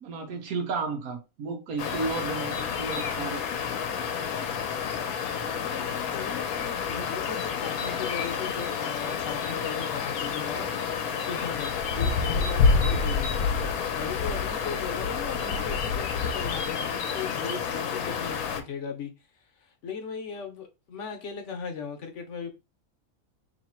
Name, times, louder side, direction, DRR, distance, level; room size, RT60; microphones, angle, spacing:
voice 1, 0.0-3.4, right 4 dB, 90° right, 1.4 m, -33 dB
sound 1, 1.8-18.6, left 6 dB, 85° left, 1.1 m, -29 dB
voice 2, 5.4-11.7 12.0-13.5 14.0-19.1 19.8-22.5, left 6 dB, 60° left, 1.1 m, -38 dB
3.2 x 2.9 x 4.3 m
omnidirectional pair, 1.5 m